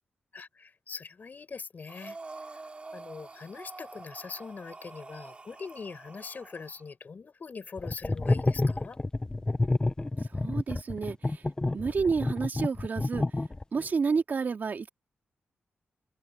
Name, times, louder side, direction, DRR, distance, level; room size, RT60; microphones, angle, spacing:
voice 1, 0.3-2.6 2.9-9.0, left 5 dB, 50° left, 7.9 m, -42 dB
Breathing, 1.9-6.8, right 3 dB, 30° right, 3.2 m, -46 dB
sound 1, 7.8-13.9, left 2 dB, 20° left, 0.9 m, -29 dB
voice 2, 10.3-11.4 11.7-13.2 13.7-14.9, right 5 dB, 55° right, 2.3 m, -30 dB
cardioid pair, 70°, 4 cm